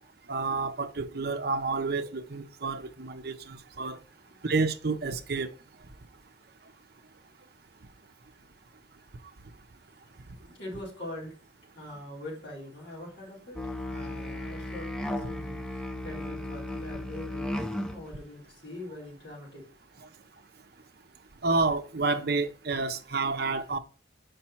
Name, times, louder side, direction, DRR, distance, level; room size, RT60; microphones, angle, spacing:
voice 1, 0.3-4.0 4.4-5.5 21.4-23.8, right 3 dB, 55° right, 0.6 m, -29 dB
voice 2, 4.2-4.5 10.1-11.4 11.7-13.6 13.9-19.6, left 1 dB, 60° left, 3.8 m, -43 dB
Musical instrument, 13.6-18.1, left 1 dB, 5° left, 0.5 m, -35 dB
5.7 x 5.2 x 4.3 m
head